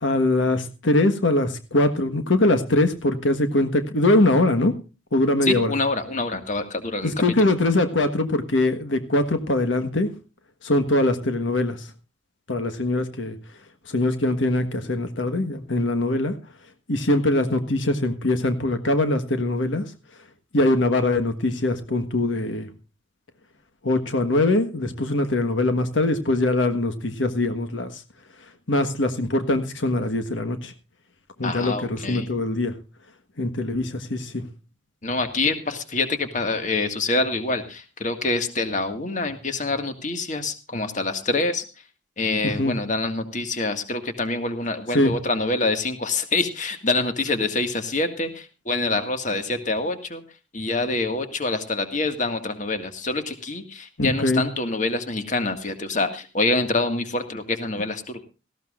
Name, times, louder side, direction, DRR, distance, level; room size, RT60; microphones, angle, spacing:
voice 1, 0.0-4.7 5.1-5.7 7.0-10.1 10.6-11.8 12.5-13.4 13.9-16.3 16.9-19.8 20.5-22.7 23.8-28.0 28.7-30.7 31.4-32.7 33.4-34.4 42.4-42.7 44.9-45.1 54.0-54.4, left 2 dB, 75° left, 8 dB, 1.4 m, -22 dB
voice 2, 5.4-7.1 7.4-7.5 31.4-32.3 35.0-41.6 42.2-50.2 50.5-58.2, left 3 dB, 40° left, 7 dB, 1.9 m, -26 dB
18.0 x 15.0 x 2.5 m, 0.32 s
head